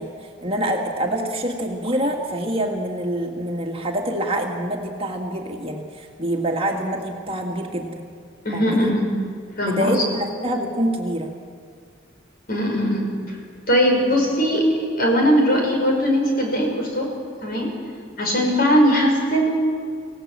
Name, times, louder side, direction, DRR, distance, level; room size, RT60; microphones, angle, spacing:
voice 1, 0.0-8.1 8.5-8.9 9.6-11.3, right 1 dB, 30° right, 1 dB, 2.1 m, -26 dB
voice 2, 8.4-9.0 9.6-10.0 12.5-13.1 13.7-14.7 15.0-17.1 17.4-17.7 18.2-19.6, equal, 50° left, 1 dB, 5.7 m, -19 dB
26.0 x 17.0 x 7.6 m, 2.2 s
head